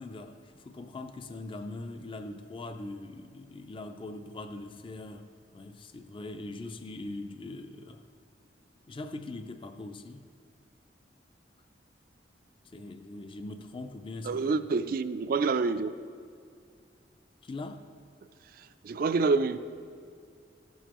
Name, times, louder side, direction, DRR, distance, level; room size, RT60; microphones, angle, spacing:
voice 1, 0.0-8.0 8.9-10.3 12.7-14.7 17.4-17.8, left 2 dB, 30° left, 8 dB, 0.4 m, -41 dB
voice 2, 14.3-15.9 18.8-19.6, right 4 dB, 55° right, 12 dB, 0.3 m, -27 dB
15.0 x 7.1 x 3.0 m, 2.3 s
head